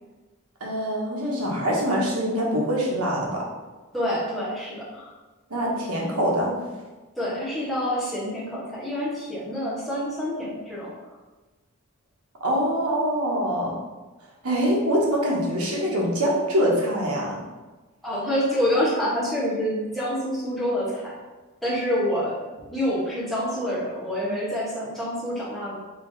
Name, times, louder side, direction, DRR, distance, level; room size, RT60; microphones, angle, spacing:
voice 1, 0.6-3.5 5.5-6.6 12.4-13.8 14.4-17.4, equal, 85° right, -3 dB, 1.0 m, -24 dB
voice 2, 3.9-5.1 7.1-10.9 18.0-21.1 21.6-22.3 22.7-25.8, equal, ahead, -10 dB, 1.3 m, -27 dB
3.4 x 2.8 x 4.0 m, 1.2 s
head